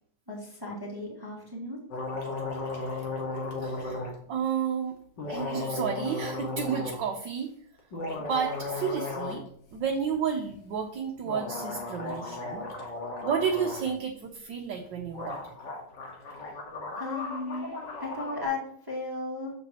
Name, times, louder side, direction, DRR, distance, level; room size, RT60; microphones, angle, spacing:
voice 1, 0.3-1.8 16.2-16.6 17.0-17.7 18.0-19.5, left 3 dB, 10° right, -3 dB, 1.8 m, -36 dB
sound 1, 1.9-4.1 5.2-7.0 7.8-9.4 9.7-9.8 11.2-13.9 14.9-15.0 15.1-18.4, left 2 dB, 55° left, 2.2 m, -35 dB
voice 2, 3.6-4.9 5.3-7.5 8.2-9.4 9.7-12.6 13.2-15.5, right 7 dB, 65° right, 2 dB, 1.4 m, -31 dB
8.5 x 7.0 x 3.0 m, 0.63 s
omnidirectional pair, 2.3 m